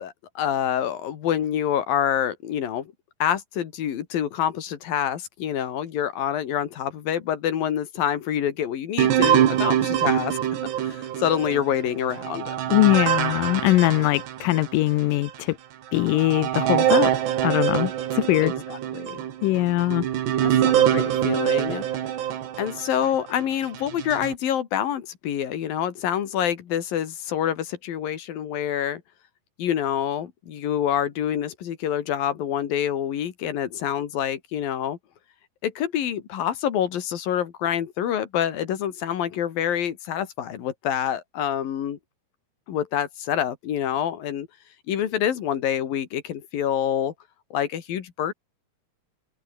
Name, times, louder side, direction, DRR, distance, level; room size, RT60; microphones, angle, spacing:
voice 1, 0.0-2.9 3.2-10.4 10.8-12.6 18.4-19.2 20.4-21.8 22.6-29.0 29.6-35.0 35.6-42.0 42.7-44.5 44.9-47.1 47.5-48.3, left 10 dB, 60° left, 3.7 m, -27 dB
sound 1, 9.0-14.7 15.3-15.4 16.0-23.2 23.8-24.4, right 11 dB, 85° right, 4.3 m, -24 dB
voice 2, 12.7-15.6 15.9-17.1 17.4-18.5 19.4-20.1, left 17 dB, 75° left, 2.0 m, -21 dB
omnidirectional pair, 4.8 m